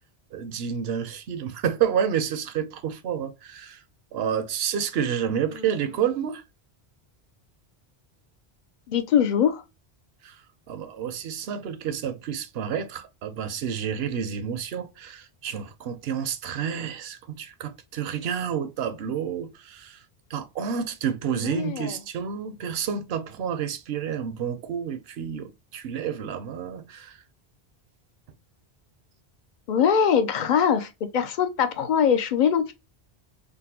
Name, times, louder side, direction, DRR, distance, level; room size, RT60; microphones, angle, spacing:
voice 1, 0.3-3.8 4.1-6.4 10.2-10.4 10.7-20.0 20.3-27.2, right 8 dB, 70° right, 0.8 m, -29 dB
voice 2, 8.9-9.6 21.3-22.0 29.7-32.7, left 7 dB, 55° left, 0.5 m, -22 dB
3.8 x 2.2 x 2.7 m
omnidirectional pair, 1.1 m